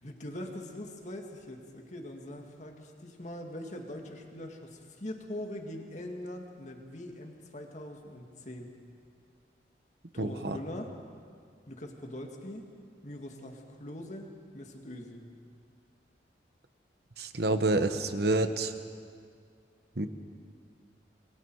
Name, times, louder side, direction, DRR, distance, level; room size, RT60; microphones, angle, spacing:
voice 1, 0.0-8.7 10.1-10.9 11.7-12.7 13.0-15.3, left 1 dB, 40° left, 2 dB, 2.2 m, -42 dB
voice 2, 10.2-10.6 17.2-18.7 20.0-20.1, right 2 dB, 60° right, 9 dB, 1.2 m, -28 dB
27.0 x 22.0 x 4.8 m, 2.2 s
head